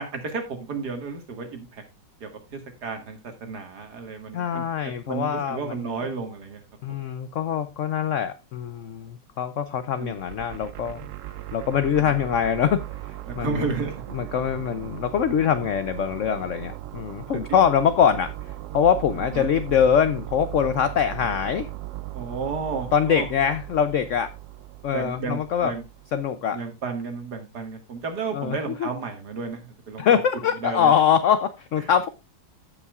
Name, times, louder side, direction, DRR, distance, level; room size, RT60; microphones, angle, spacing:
voice 1, 0.0-1.8 2.2-6.6 10.0-10.1 13.3-14.0 17.3-17.4 19.4-19.5 22.1-23.3 24.9-25.8 26.5-30.2 30.6-30.9, right 4 dB, 60° right, 5 dB, 2.2 m, -32 dB
voice 2, 4.3-6.1 6.8-12.8 13.4-13.7 14.1-21.7 22.9-24.3 24.8-25.7 26.1-26.6 28.3-28.9 30.0-32.1, left 8 dB, 80° left, 12 dB, 0.6 m, -23 dB
sound 1, 10.1-26.3, right 14 dB, 80° right, 0.7 m, -38 dB
15.5 x 5.6 x 2.3 m, 0.24 s
omnidirectional pair, 2.0 m